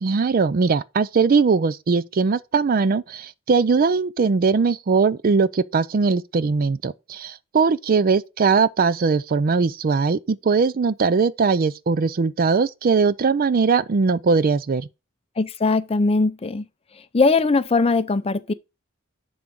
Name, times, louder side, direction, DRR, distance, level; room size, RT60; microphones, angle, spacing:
voice 1, 0.0-14.9, right 4 dB, 45° right, 0.4 m, -20 dB
voice 2, 15.4-16.7 17.1-18.5, left 3 dB, 30° left, 0.5 m, -20 dB
10.5 x 3.8 x 4.7 m
head